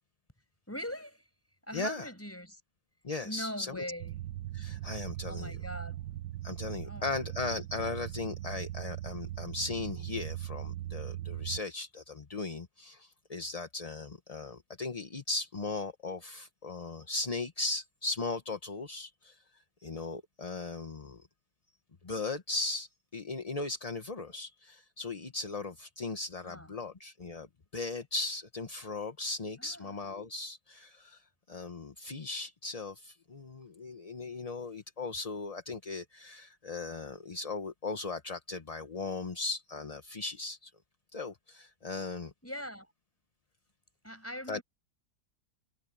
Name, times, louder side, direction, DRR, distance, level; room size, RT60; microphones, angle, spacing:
voice 1, 0.7-1.3 1.7-2.6 3.2-4.2 5.2-6.0 6.8-7.4 26.4-26.7 29.6-29.9 42.4-42.9 44.0-44.6, equal, 10° left, 6.7 m, -41 dB
voice 2, 1.7-2.1 3.0-3.8 4.5-5.6 6.4-21.3 22.0-27.5 27.7-40.7 41.1-42.3 44.5-44.6, left 3 dB, 30° left, 1.0 m, -38 dB
sound 1, 4.0-11.6, right 13 dB, 85° right, 1.3 m, -40 dB
omnidirectional pair, 1.7 m